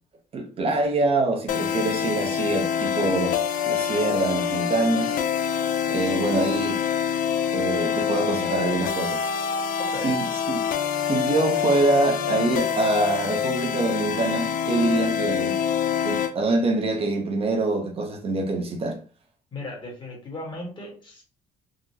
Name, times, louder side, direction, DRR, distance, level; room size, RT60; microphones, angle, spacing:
voice 1, 0.3-3.4 3.7-5.2 5.9-6.8 7.5-9.3 10.0-10.6 11.1-15.6 16.0-19.0, right 3 dB, 40° right, 0.7 m, -25 dB
sound 1, 1.5-16.3, left 8 dB, 65° left, 0.4 m, -26 dB
voice 2, 9.8-10.2 19.5-21.2, left 2 dB, 30° left, 1.4 m, -36 dB
3.8 x 2.1 x 2.7 m
cardioid pair, 125°, 15 cm